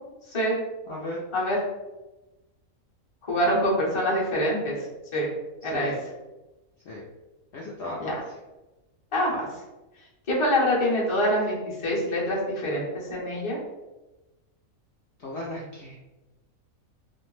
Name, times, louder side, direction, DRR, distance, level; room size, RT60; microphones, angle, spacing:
voice 1, 0.9-1.2 5.6-6.0 6.9-7.0 7.5-8.0 15.2-16.0, left 1 dB, 65° left, -5 dB, 0.7 m, -35 dB
voice 2, 3.2-4.8 5.1-5.3 5.6-5.9 8.0-8.1 9.1-9.5 10.3-13.6, equal, 30° left, -5 dB, 0.6 m, -25 dB
2.5 x 2.0 x 3.1 m, 1.0 s
omnidirectional pair, 1.5 m